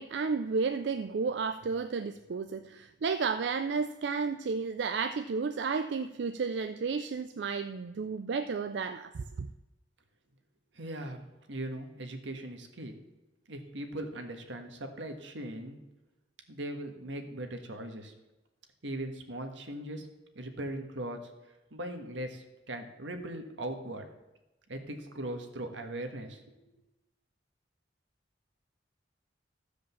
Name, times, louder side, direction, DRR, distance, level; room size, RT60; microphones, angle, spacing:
voice 1, 0.0-9.5, right 5 dB, 65° right, 10 dB, 0.4 m, -32 dB
voice 2, 10.7-12.9 13.5-15.8 16.5-18.1 18.8-20.1 20.3-21.2 21.7-24.1 24.7-26.6, right 1 dB, 90° right, 5 dB, 1.5 m, -39 dB
14.0 x 5.1 x 7.0 m, 1.0 s
head